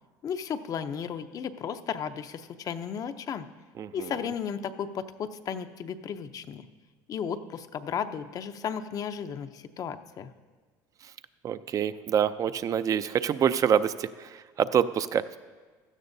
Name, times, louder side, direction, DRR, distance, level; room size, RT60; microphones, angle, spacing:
voice 1, 0.2-3.5 3.9-6.7 7.1-10.3, left 7 dB, 45° left, 10 dB, 0.6 m, -34 dB
voice 2, 3.8-4.1 11.4-15.4, right 8 dB, 40° right, 14 dB, 0.5 m, -26 dB
16.0 x 12.5 x 2.7 m, 1.4 s
supercardioid pair, 100°, 9 cm